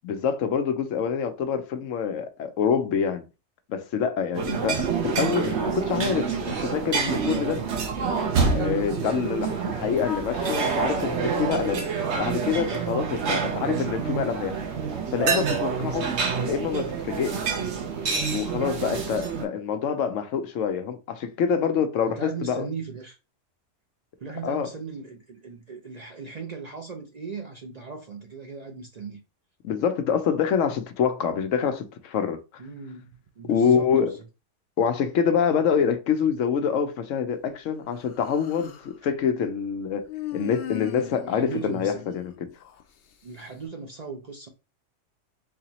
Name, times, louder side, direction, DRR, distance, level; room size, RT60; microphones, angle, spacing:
voice 1, 0.0-3.2 3.7-7.6 8.3-11.9 12.2-14.5 15.1-16.1 16.4-17.6 18.3-22.7 24.4-24.7 29.6-32.4 33.4-34.1 34.8-40.1 40.3-42.5, left 7 dB, 90° left, 1.0 m, -26 dB
sound 1, 4.4-19.5, right 5 dB, 65° right, 1.0 m, -27 dB
voice 2, 13.2-13.7 16.1-16.4 22.1-23.2 24.2-29.2 32.6-34.2 40.9-42.0 43.2-44.5, right 5 dB, 50° right, 0.5 m, -38 dB
Human voice, 38.0-38.9 40.1-42.8, left 12 dB, 60° left, 0.7 m, -38 dB
4.0 x 2.9 x 2.9 m
omnidirectional pair, 1.3 m